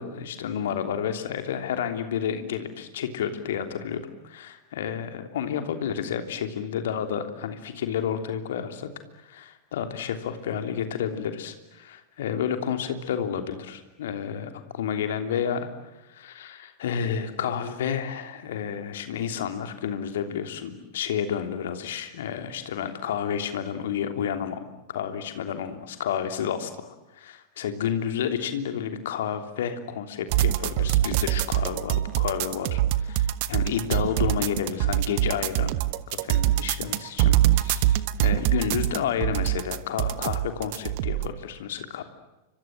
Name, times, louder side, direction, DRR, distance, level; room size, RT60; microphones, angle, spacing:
voice 1, 0.0-8.9 9.2-15.7 16.1-24.6 24.9-35.7 36.1-42.0, left 8 dB, 60° left, 7 dB, 3.2 m, -30 dB
sound 1, 30.3-41.3, right 14 dB, 45° right, 1.3 m, -24 dB
30.0 x 25.5 x 7.7 m, 1.0 s
figure-of-eight pair, 90°, 0 cm